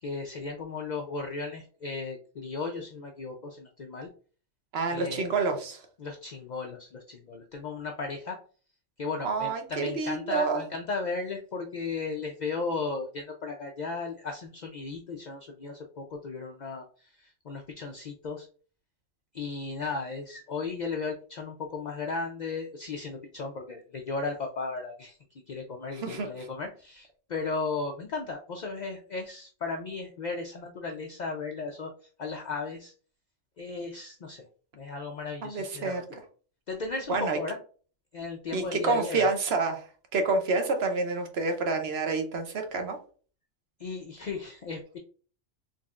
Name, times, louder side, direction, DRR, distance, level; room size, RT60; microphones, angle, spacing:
voice 1, 0.0-4.1 4.9-5.3 6.0-8.4 9.0-18.5 19.3-25.2 25.5-31.9 32.2-32.9 33.6-34.4 34.7-36.0 36.7-37.6 38.1-39.3 43.8-45.0, left 4 dB, 65° left, 2 dB, 0.4 m, -35 dB
voice 2, 4.7-5.8 9.2-10.6 25.9-26.5 35.4-36.0 37.1-37.4 38.5-39.9 40.1-43.0, right 3 dB, 60° right, 6 dB, 0.9 m, -28 dB
3.9 x 3.2 x 2.4 m, 0.40 s
omnidirectional pair, 1.3 m